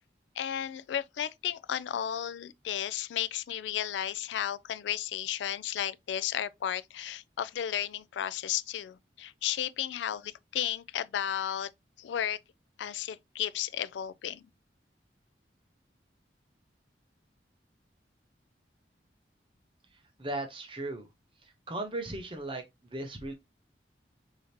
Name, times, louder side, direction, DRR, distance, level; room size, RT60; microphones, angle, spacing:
voice 1, 0.4-11.7 12.0-12.4 12.8-14.5, left 10 dB, 80° left, 0.3 m, -33 dB
voice 2, 20.2-21.1 21.7-22.6 22.9-23.3, right 2 dB, 30° right, 0.8 m, -36 dB
4.9 x 2.8 x 2.9 m
head